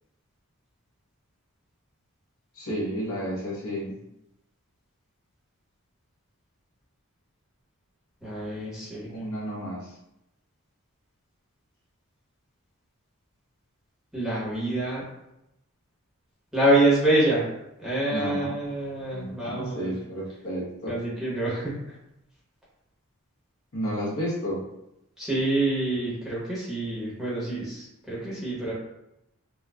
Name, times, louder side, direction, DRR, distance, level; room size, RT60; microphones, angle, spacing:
voice 1, 2.5-3.9 9.1-9.9 18.1-18.5 19.1-21.0 23.7-24.6, equal, 70° left, -5 dB, 1.0 m, -31 dB
voice 2, 8.2-9.1 14.1-15.0 16.5-17.5 17.8-19.9 20.9-21.8 25.2-28.7, right 1 dB, 5° right, -8 dB, 1.0 m, -26 dB
4.1 x 2.2 x 2.3 m, 0.87 s
head